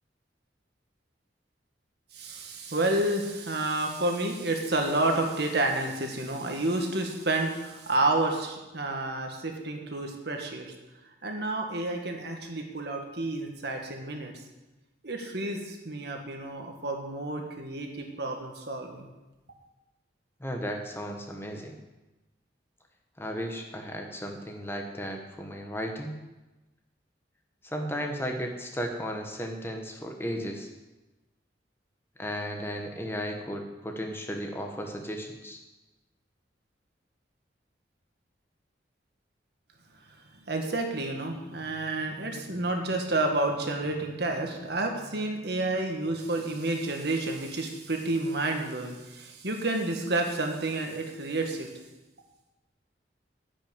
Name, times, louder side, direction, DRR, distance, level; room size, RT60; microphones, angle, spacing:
voice 1, 2.1-10.7 11.2-14.3 15.0-19.1 40.5-51.7, right 2 dB, 60° right, 3 dB, 1.7 m, -30 dB
voice 2, 20.4-21.7 23.2-26.1 27.6-30.7 32.2-35.6, equal, 15° left, 3 dB, 1.1 m, -35 dB
10.0 x 6.0 x 8.8 m, 1.1 s
head